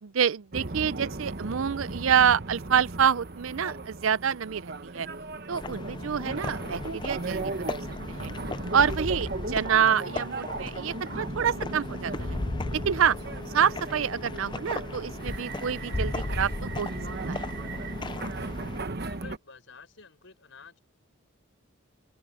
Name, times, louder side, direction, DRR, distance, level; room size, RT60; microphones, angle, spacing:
voice 1, 0.0-5.1 5.5-7.7 8.2-8.3 8.7-12.4 12.9-13.2 13.5-16.9 17.3-17.4, right 7 dB, 75° right, 0.5 m, -27 dB
sound 1, 0.5-19.4, right 2 dB, 50° right, 1.1 m, -37 dB
sound 2, 5.5-18.8, left 2 dB, 20° left, 0.5 m, -36 dB
voice 2, 19.1-20.8, left 4 dB, 65° left, 5.5 m, -50 dB
open air
head